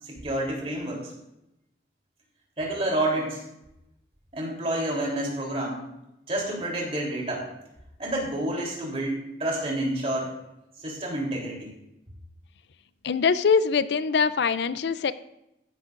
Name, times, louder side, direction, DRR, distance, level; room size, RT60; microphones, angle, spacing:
voice 1, 0.0-1.1 2.6-3.4 4.3-5.8 6.3-7.5 8.0-10.4 10.8-11.7, right 1 dB, 35° right, -2 dB, 3.3 m, -29 dB
voice 2, 13.0-15.1, left 5 dB, 70° left, 14 dB, 0.4 m, -23 dB
14.5 x 11.5 x 2.5 m, 0.87 s
head